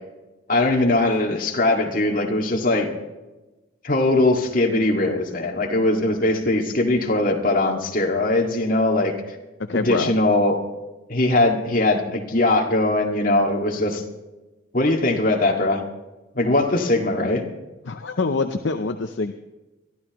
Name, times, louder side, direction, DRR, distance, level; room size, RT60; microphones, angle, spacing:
voice 1, 0.5-2.9 3.8-9.4 9.7-10.6 11.1-14.0 14.7-15.8 16.4-17.5, left 2 dB, 40° left, 1 dB, 2.0 m, -20 dB
voice 2, 9.7-10.1 17.9-19.3, left 3 dB, 60° left, 7 dB, 0.6 m, -25 dB
22.5 x 13.5 x 3.1 m, 1.1 s
head